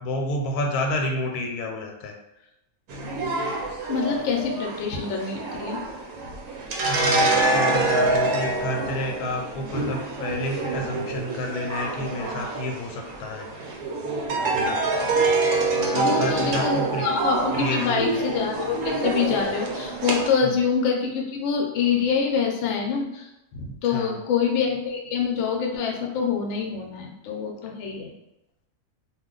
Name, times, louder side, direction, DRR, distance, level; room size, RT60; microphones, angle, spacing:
voice 1, 0.0-2.1 6.8-13.8 14.5-14.8 15.8-17.1 17.5-18.1 20.4-20.6 23.8-24.2, left 1 dB, 90° left, 2 dB, 1.1 m, -30 dB
sound 1, 2.9-20.3, right 3 dB, 75° right, 1.1 m, -26 dB
voice 2, 3.9-5.8 15.9-28.1, left 6 dB, 65° left, 0 dB, 0.7 m, -26 dB
2.4 x 2.2 x 3.7 m, 0.91 s
omnidirectional pair, 1.6 m